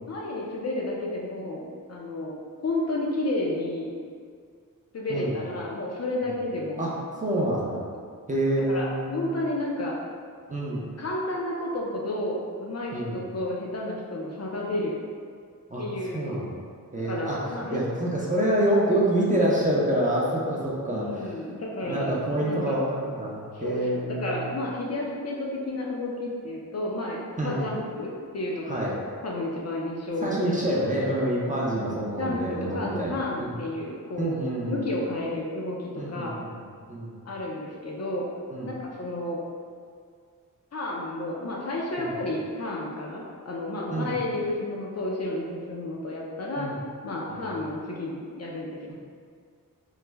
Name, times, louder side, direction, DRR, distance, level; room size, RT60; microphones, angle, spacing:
voice 1, 0.1-1.6 1.9-2.4 2.6-3.9 4.9-6.9 8.7-10.0 11.0-15.0 15.8-16.3 17.0-17.8 20.9-22.8 23.5-28.8 29.2-30.9 31.4-34.3 34.7-36.4 37.3-38.3 38.7-39.4 40.7-46.7 47.0-48.9, left 1 dB, 45° left, -3 dB, 0.5 m, -31 dB
voice 2, 7.2-7.8 8.3-9.4 10.5-10.8 12.9-13.2 15.7-15.8 16.1-16.6 16.9-21.4 21.8-24.5 27.4-27.6 28.7-28.9 30.2-33.5 34.2-34.9 36.0-37.1 38.5-38.7 42.0-42.2 43.9-44.2 46.6-46.8 47.3-47.5, right 1 dB, 25° right, -5 dB, 0.5 m, -27 dB
3.2 x 2.0 x 3.4 m, 2.1 s
wide cardioid pair, 115°, 34 cm